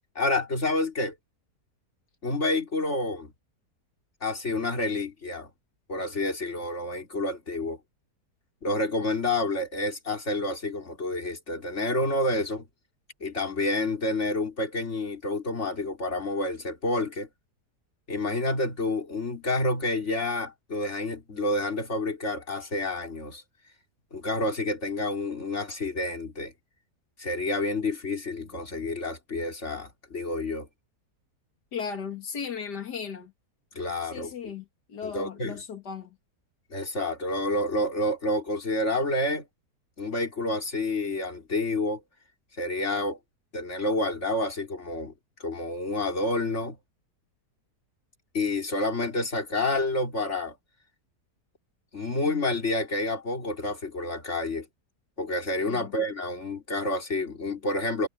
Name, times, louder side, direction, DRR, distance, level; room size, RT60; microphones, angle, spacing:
voice 1, 0.2-1.1 2.2-3.3 4.2-5.5 5.9-7.8 8.6-12.7 13.2-17.3 18.1-23.4 24.1-26.5 27.2-30.7 33.7-34.5 35.0-35.6 36.7-39.5 40.0-42.0 42.6-43.2 43.5-45.1 45.4-46.8 48.3-50.6 51.9-54.7 55.2-58.1, left 2 dB, 45° left, 4.0 m, -29 dB
voice 2, 31.7-33.3 34.0-36.2 55.7-55.9, left 6 dB, 90° left, 2.5 m, -36 dB
omnidirectional pair, 1.7 m